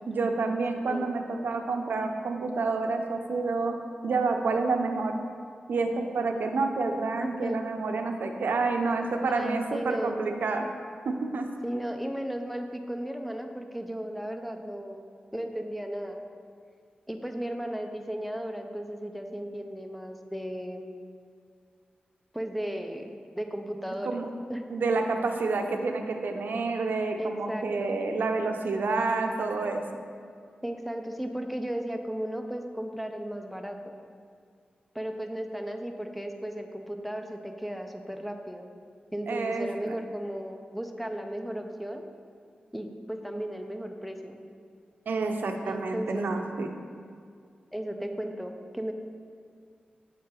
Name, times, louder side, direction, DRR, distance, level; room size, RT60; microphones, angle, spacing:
voice 1, 0.1-3.7 4.0-5.1 5.7-10.7 11.1-11.5 24.0-24.3 24.7-29.8 39.3-40.0 45.1-46.7, right 3 dB, 75° right, 4 dB, 0.5 m, -28 dB
voice 2, 0.8-1.1 7.2-7.6 9.3-10.2 11.6-15.0 15.3-16.2 17.1-20.9 22.3-23.1 23.4-24.2 24.5-24.6 27.2-28.0 30.6-34.0 34.9-38.7 39.1-42.0 42.7-44.4 45.6-46.3 47.7-48.9, equal, ahead, 4 dB, 0.4 m, -35 dB
7.3 x 3.6 x 4.4 m, 2.2 s
wide cardioid pair, 115°, 3 cm